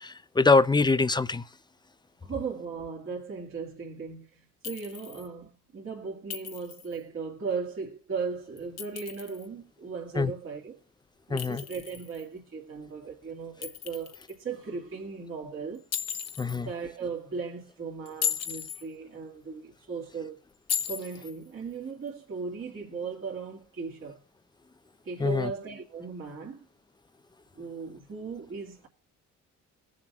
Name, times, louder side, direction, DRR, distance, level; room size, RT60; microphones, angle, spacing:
voice 1, 0.0-1.4 10.2-10.3 11.3-11.6 16.4-16.7 25.2-25.5, left 3 dB, 15° left, 0.7 m, -23 dB
voice 2, 2.2-10.8 11.3-15.9 16.5-20.4 20.9-24.2 25.0-26.7 27.6-28.9, right 5 dB, 45° right, 2.5 m, -37 dB
Chink clink, 4.6-5.3 6.3-6.9 8.6-9.5 11.4-12.2 13.6-14.4 15.9-16.6 18.1-18.8 20.7-21.3, left 9 dB, 55° left, 1.1 m, -35 dB
21.5 x 7.3 x 2.5 m
cardioid pair, 90°, 30 cm